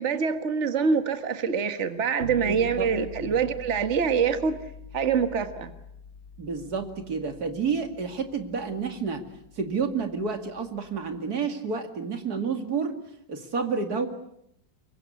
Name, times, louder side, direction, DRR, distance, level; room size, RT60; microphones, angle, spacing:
voice 1, 0.0-4.6 4.9-5.7, right 6 dB, 40° right, 9 dB, 1.7 m, -25 dB
sound 1, 2.2-11.2, left 4 dB, 80° left, 3.6 m, -45 dB
voice 2, 2.4-2.9 3.2-3.4 6.4-9.2 9.6-13.0 13.3-14.1, right 5 dB, 55° right, 6 dB, 2.8 m, -30 dB
25.0 x 23.0 x 8.4 m, 0.75 s
omnidirectional pair, 2.0 m